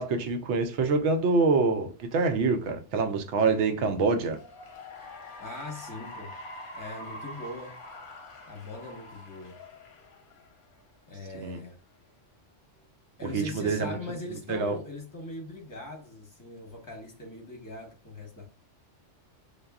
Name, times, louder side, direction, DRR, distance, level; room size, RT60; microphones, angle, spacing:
voice 1, 0.0-4.4 11.4-11.6 13.3-14.0 14.5-14.8, right 4 dB, 70° right, 0.8 m, -26 dB
Cheering / Applause, 4.2-10.8, left 1 dB, 50° left, 0.8 m, -45 dB
voice 2, 5.4-6.3 6.7-7.8 8.5-9.6 11.1-11.8 13.2-18.5, left 2 dB, 15° left, 0.9 m, -40 dB
6.5 x 2.3 x 2.3 m
omnidirectional pair, 1.2 m